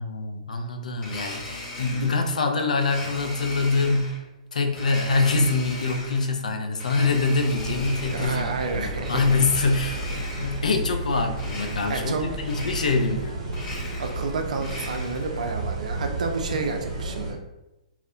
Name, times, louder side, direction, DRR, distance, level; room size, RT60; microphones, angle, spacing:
voice 1, 0.0-4.2 4.5-8.5 8.7-10.1 10.4-13.4, left 3 dB, 85° left, 5 dB, 0.4 m, -24 dB
Domestic sounds home sounds, 1.0-2.3 2.8-4.2 4.7-6.3 6.7-8.6 9.0-10.7 11.3-12.2 12.4-13.2 13.5-15.3, left 2 dB, 25° left, 0.6 m, -38 dB
sound 1, 7.5-17.3, right 2 dB, 55° right, 0.8 m, -32 dB
voice 2, 8.1-9.2 11.9-12.2 14.0-17.4, right 4 dB, 80° right, 4 dB, 0.4 m, -30 dB
2.4 x 2.0 x 2.7 m, 0.95 s
hypercardioid pair, 140°, 4 cm